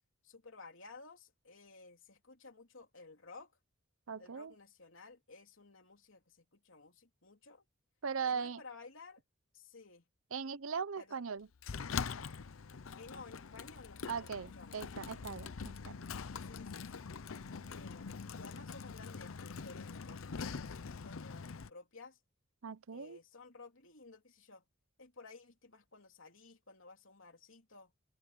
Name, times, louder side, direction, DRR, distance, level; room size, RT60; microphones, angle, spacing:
voice 1, 0.2-3.5 4.2-7.6 8.2-9.2 9.5-10.0 11.0-11.2 13.0-14.8 16.4-17.1 17.7-22.2 22.9-24.6 25.0-27.9, left 3 dB, 70° left, 3.7 m, -55 dB
voice 2, 4.1-4.5 8.0-8.6 10.3-11.5 14.1-15.9 22.6-23.2, right 6 dB, 85° right, 0.8 m, -39 dB
Sliding door, 11.6-21.7, left 5 dB, 85° left, 0.7 m, -43 dB
head